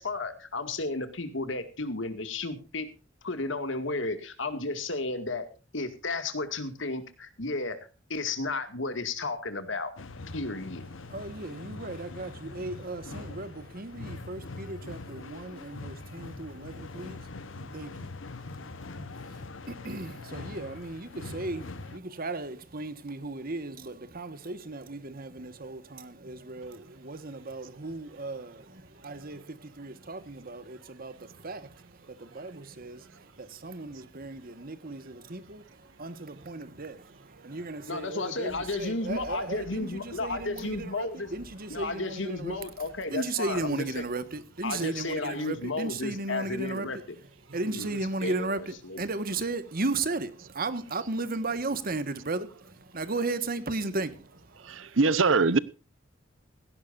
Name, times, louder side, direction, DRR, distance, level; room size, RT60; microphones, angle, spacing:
voice 1, 0.0-2.9 3.2-5.5 5.7-7.8 8.1-9.9 10.3-10.8 37.9-41.3 41.7-44.0 44.6-47.0 47.6-49.0, left 3 dB, 70° left, 2.2 m, -33 dB
sound 1, 10.0-22.0, left 3 dB, 90° left, 1.1 m, -42 dB
voice 2, 11.1-42.6 43.1-47.0 47.5-55.0, right 2 dB, 50° right, 1.5 m, -36 dB
sound 2, 38.5-45.2, equal, 55° left, 3.4 m, -55 dB
voice 3, 54.6-55.6, right 4 dB, 90° right, 0.9 m, -23 dB
17.5 x 16.5 x 2.6 m
head